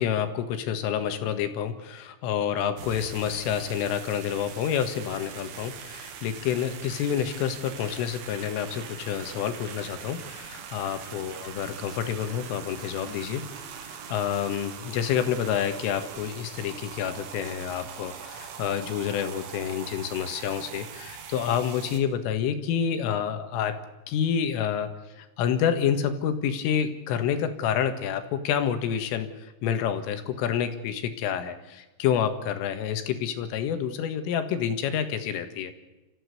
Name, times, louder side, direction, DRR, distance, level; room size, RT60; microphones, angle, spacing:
voice 1, 0.0-13.4 13.8-23.8 24.1-35.7, left 8 dB, 75° left, 8 dB, 4.1 m, -28 dB
sound 1, 2.8-22.0, right 7 dB, 70° right, 4.4 m, -42 dB
29.5 x 15.0 x 8.1 m, 1.1 s
omnidirectional pair, 6.0 m